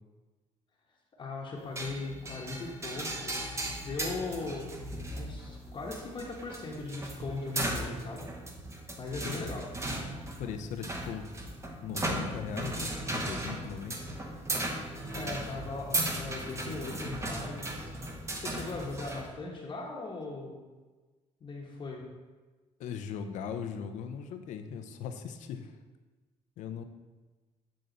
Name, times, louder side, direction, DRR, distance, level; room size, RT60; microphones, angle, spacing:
voice 1, 1.2-4.7 5.2-8.3 9.0-9.7 15.1-17.9 18.4-20.6 21.4-22.0, left 3 dB, 40° left, -3 dB, 1.1 m, -39 dB
sound 1, 1.8-19.3, right 1 dB, 25° right, 1.0 m, -37 dB
voice 2, 10.4-11.3 11.8-14.0 22.8-25.7 26.6-26.8, left 7 dB, 80° left, 8 dB, 0.6 m, -39 dB
7.9 x 3.8 x 4.0 m, 1.3 s
cardioid pair, 105°, 12 cm